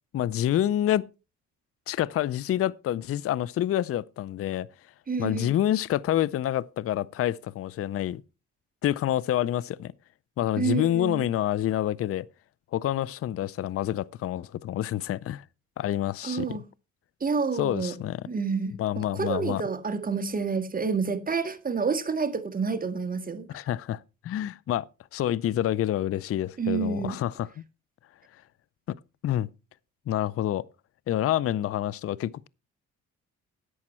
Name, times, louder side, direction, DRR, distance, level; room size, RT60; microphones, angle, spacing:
voice 1, 0.1-1.0 1.9-4.7 5.2-8.2 8.8-9.9 10.4-12.2 12.7-15.4 15.8-16.6 17.6-18.2 18.8-19.6 23.5-27.5 29.2-29.5 30.1-30.6 31.1-32.5, left 12 dB, 50° left, 0.5 m, -27 dB
voice 2, 5.1-5.5 10.6-11.3 16.2-16.6 17.2-17.9 18.3-23.6 26.6-27.2, right 5 dB, 30° right, 1.7 m, -29 dB
11.0 x 8.5 x 4.4 m
cardioid pair, 90°, 30 cm